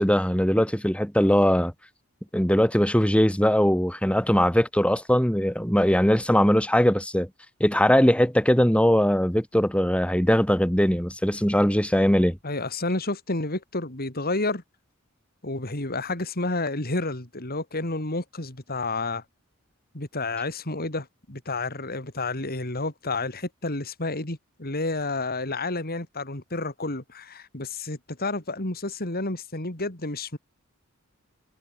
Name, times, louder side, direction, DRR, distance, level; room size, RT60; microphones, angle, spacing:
voice 1, 0.0-1.7 2.3-7.3 7.6-12.4, equal, 5° left, 3.6 m, -21 dB
voice 2, 12.4-14.6 15.4-19.2 19.9-30.4, left 2 dB, 45° left, 3.6 m, -30 dB
head